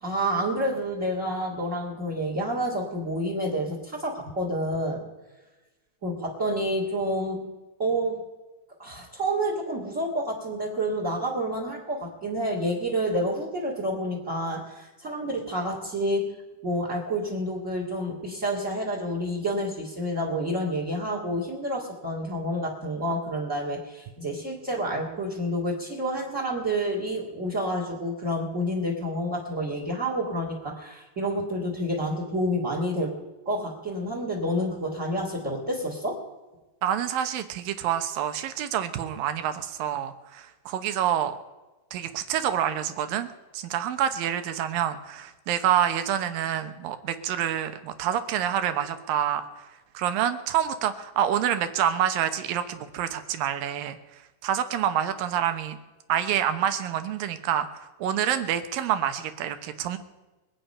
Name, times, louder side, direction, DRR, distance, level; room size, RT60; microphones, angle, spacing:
voice 1, 0.0-5.0 6.0-7.4 7.8-8.2 8.8-16.3 16.6-33.1 33.5-36.2, equal, 25° right, -1 dB, 2.2 m, -29 dB
voice 2, 36.8-41.4 41.9-43.3 43.5-49.7 49.9-54.0 54.4-55.8 56.1-60.0, right 10 dB, 80° right, 10 dB, 2.7 m, -27 dB
24.0 x 8.9 x 5.6 m, 1.2 s
omnidirectional pair, 4.1 m